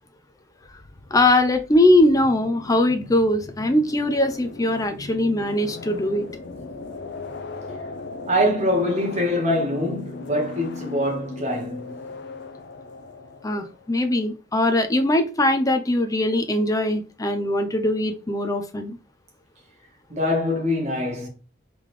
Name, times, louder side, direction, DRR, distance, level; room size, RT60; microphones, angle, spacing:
sound 1, 0.6-14.0, left 3 dB, 60° left, 0.6 m, -38 dB
voice 1, 1.1-6.3 13.4-19.0, left 1 dB, 20° left, 0.5 m, -21 dB
voice 2, 8.3-12.1 20.1-21.3, left 1 dB, 35° right, 1.5 m, -24 dB
3.7 x 3.3 x 3.2 m
head